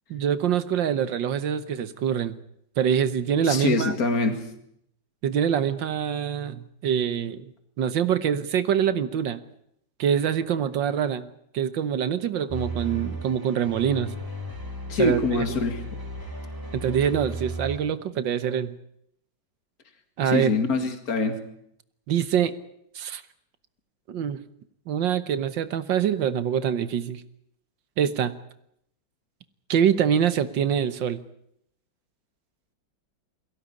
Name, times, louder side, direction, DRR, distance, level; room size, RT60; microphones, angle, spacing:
voice 1, 0.1-2.4 2.8-3.9 5.2-7.4 7.8-9.4 10.0-11.3 11.5-14.2 15.0-15.4 16.7-18.7 20.2-20.5 22.1-22.5 22.9-23.2 24.1-24.4 24.9-27.2 28.0-28.3 29.7-31.2, right 8 dB, 80° right, 13 dB, 1.8 m, -25 dB
voice 2, 3.5-4.4 14.9-15.8 20.3-21.4, left 3 dB, 50° left, 7 dB, 2.7 m, -24 dB
sound 1, 12.5-17.8, right 1 dB, 10° right, 3.1 m, -35 dB
23.0 x 16.5 x 9.6 m, 0.74 s
omnidirectional pair, 2.0 m